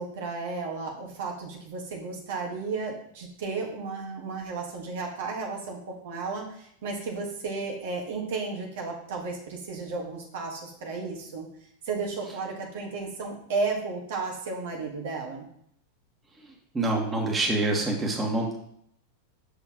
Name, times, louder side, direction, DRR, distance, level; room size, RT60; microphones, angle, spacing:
voice 1, 0.0-11.5 11.8-15.5, right 4 dB, 65° right, -1 dB, 1.6 m, -33 dB
voice 2, 16.7-18.6, right 2 dB, 15° right, -1 dB, 1.6 m, -26 dB
6.6 x 6.4 x 3.0 m, 0.69 s
hypercardioid pair, 95°, 0 cm